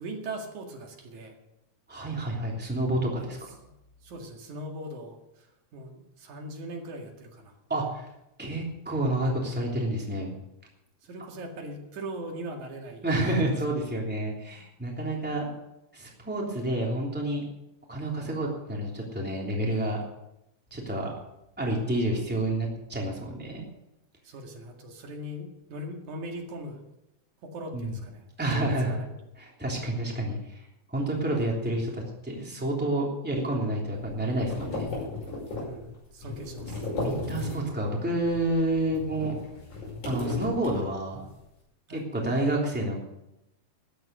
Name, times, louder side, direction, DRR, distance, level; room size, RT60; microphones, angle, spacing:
voice 1, 0.0-1.4 3.2-3.4 4.0-7.5 11.0-13.4 24.2-26.8 27.4-28.2 28.5-29.1 35.6-36.9 41.9-42.1, right 1 dB, 80° right, 2 dB, 3.5 m, -40 dB
voice 2, 1.9-3.4 7.7-8.0 8.4-10.3 13.0-15.5 15.9-17.4 17.9-20.0 20.7-21.1 21.6-23.6 27.7-27.9 28.4-29.0 29.4-30.6 30.9-34.9 36.6-36.7 37.0-39.3 40.0-41.2 41.9-43.0, right 1 dB, 5° right, -2 dB, 2.9 m, -29 dB
sound 1, 34.0-37.9 38.2-41.3, left 2 dB, 75° left, 6.9 m, -36 dB
13.5 x 10.0 x 6.8 m, 0.89 s
omnidirectional pair, 3.4 m